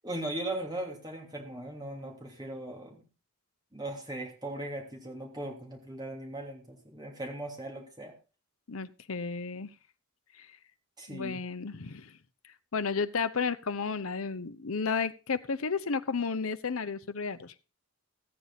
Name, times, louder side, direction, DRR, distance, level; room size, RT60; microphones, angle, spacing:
voice 1, 0.0-3.0 3.7-8.1 11.0-11.4, right 1 dB, 20° right, 0 dB, 3.1 m, -38 dB
voice 2, 8.7-9.7 10.4-10.5 11.1-12.1 12.7-17.5, left 5 dB, 70° left, 12 dB, 0.7 m, -32 dB
14.5 x 8.8 x 4.1 m, 0.33 s
head